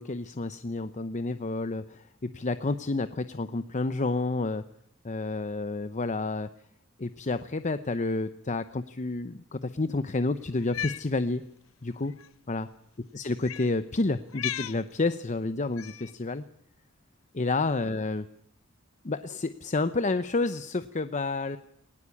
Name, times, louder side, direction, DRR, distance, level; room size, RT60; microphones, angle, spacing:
voice 1, 0.0-2.0 2.3-4.6 5.0-6.5 7.0-11.4 11.8-12.1 12.5-12.7 13.1-16.4 17.3-18.2 19.0-21.6, left 3 dB, 35° left, 12 dB, 0.8 m, -30 dB
Cat, 10.6-11.1 12.1-12.3 13.4-13.7 14.3-14.8 15.8-16.1, left 11 dB, 70° left, 0.8 m, -35 dB
20.5 x 18.5 x 8.6 m, 0.73 s
head